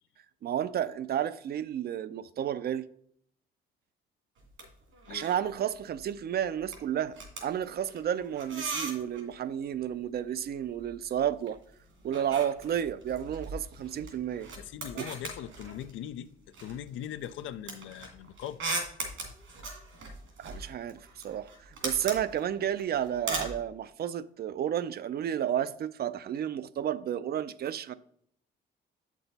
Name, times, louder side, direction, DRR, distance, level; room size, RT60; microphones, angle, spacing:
voice 1, 0.4-2.8 5.1-11.6 12.0-14.5 15.0-15.1 20.4-27.9, right 10 dB, 50° right, 0.4 m, -32 dB
sound 1, 4.4-4.7 4.9-5.5 5.8-6.1 6.4-9.3 10.5-11.5 11.8-16.1 16.5-23.6, right 3 dB, 80° right, 2.3 m, -39 dB
voice 2, 14.6-18.6 19.1-19.3, left 10 dB, 80° left, 0.5 m, -41 dB
7.7 x 6.1 x 4.0 m
cardioid pair, 90°, 20 cm